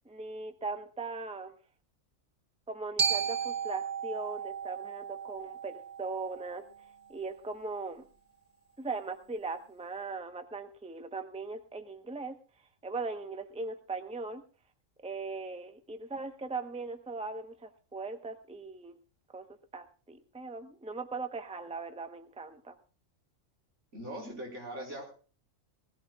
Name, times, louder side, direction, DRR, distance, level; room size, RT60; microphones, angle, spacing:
voice 1, 0.0-1.6 2.7-6.6 7.1-8.0 8.8-12.4 12.8-14.4 15.0-19.0 19.3-19.5 19.7-22.8, right 3 dB, 5° right, 7 dB, 0.9 m, -39 dB
Glockenspiel, 3.0-7.1, right 7 dB, 35° right, 1.0 m, -35 dB
voice 2, 23.9-25.1, right 1 dB, 65° right, 0 dB, 4.9 m, -40 dB
20.5 x 15.0 x 2.4 m, 0.37 s
omnidirectional pair, 1.3 m